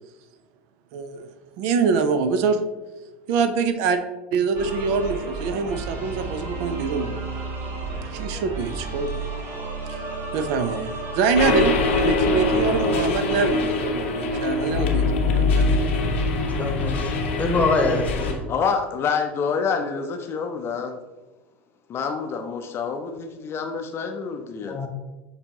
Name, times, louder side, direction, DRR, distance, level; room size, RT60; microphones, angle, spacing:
voice 1, 0.9-1.3 1.6-2.6 3.3-4.0 4.3-7.1 8.1-9.3 9.9-10.0 10.3-10.9 11.1-15.7, right 5 dB, 60° right, 9 dB, 0.4 m, -24 dB
sound 1, 4.5-14.5, right 3 dB, 40° right, 1.0 m, -33 dB
sound 2, 11.3-18.3, left 3 dB, 75° left, 0.7 m, -23 dB
voice 2, 16.6-18.4 24.7-24.9, left 3 dB, 20° left, 3 dB, 0.9 m, -24 dB
voice 3, 18.5-21.0 21.9-24.8, left 5 dB, 40° left, 5 dB, 0.5 m, -27 dB
6.7 x 2.7 x 2.8 m, 1.1 s
hypercardioid pair, 75°, 7 cm